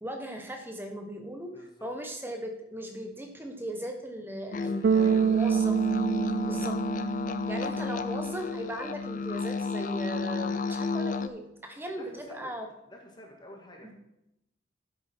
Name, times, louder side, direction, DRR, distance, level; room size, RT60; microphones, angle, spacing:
voice 1, 0.0-5.7 6.5-6.7 7.5-12.7 13.8-13.9, right 1 dB, 10° right, 3 dB, 1.1 m, -38 dB
voice 2, 1.5-1.9 4.5-5.4 6.1-7.0 7.3-7.4 7.7-7.9 11.7-12.5 12.9-13.9, left 1 dB, 25° left, 1 dB, 1.8 m, -51 dB
sound 1, 4.5-11.3, left 4 dB, 45° left, 0.4 m, -32 dB
Bass guitar, 4.8-8.0, right 7 dB, 60° right, 0.3 m, -26 dB
10.0 x 8.4 x 4.5 m, 0.86 s
head